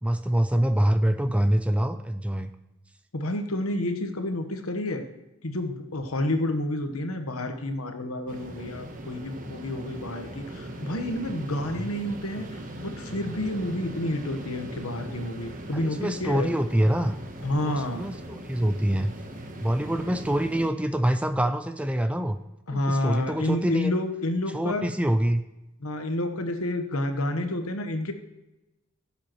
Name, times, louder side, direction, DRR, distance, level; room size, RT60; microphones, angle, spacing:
voice 1, 0.0-2.5 11.8-11.9 15.7-17.2 17.6-19.1 19.6-22.4 22.7-23.9 24.5-25.4, right 1 dB, 5° right, 9 dB, 0.4 m, -25 dB
voice 2, 3.1-5.1 5.4-16.5 17.4-18.0 22.7-24.9 25.8-28.1, left 1 dB, 90° left, 6 dB, 1.2 m, -29 dB
sound 1, 8.3-20.7, right 1 dB, 40° right, 1.1 m, -40 dB
16.0 x 7.4 x 3.1 m, 0.98 s
head